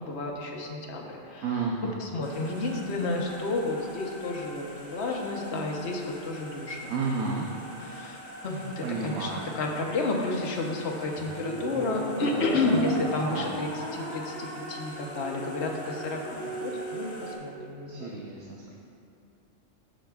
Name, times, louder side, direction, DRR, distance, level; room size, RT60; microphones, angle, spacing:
voice 1, 0.0-1.4 2.0-6.9 7.8-9.3 9.5-18.2, left 2 dB, 60° left, 0 dB, 1.1 m, -31 dB
voice 2, 1.4-2.0 6.9-7.5 8.8-9.5 12.2-13.5 17.9-18.7, right 4 dB, 85° right, -2 dB, 1.1 m, -32 dB
sound 1, 2.2-17.3, left 1 dB, 35° left, 1.2 m, -45 dB
sound 2, 11.2-17.7, right 2 dB, 40° right, 1.5 m, -37 dB
14.5 x 5.0 x 2.3 m, 2.6 s
omnidirectional pair, 1.3 m